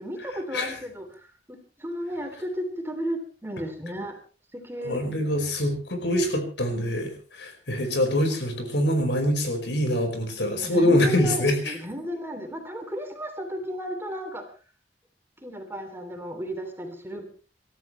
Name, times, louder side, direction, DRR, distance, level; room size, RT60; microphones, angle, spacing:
voice 1, 0.0-4.2 4.5-5.0 10.6-14.5 15.4-17.2, equal, 15° right, 5 dB, 3.1 m, -34 dB
voice 2, 4.8-11.7, left 1 dB, 75° left, 5 dB, 5.1 m, -24 dB
27.5 x 14.0 x 3.3 m, 0.36 s
head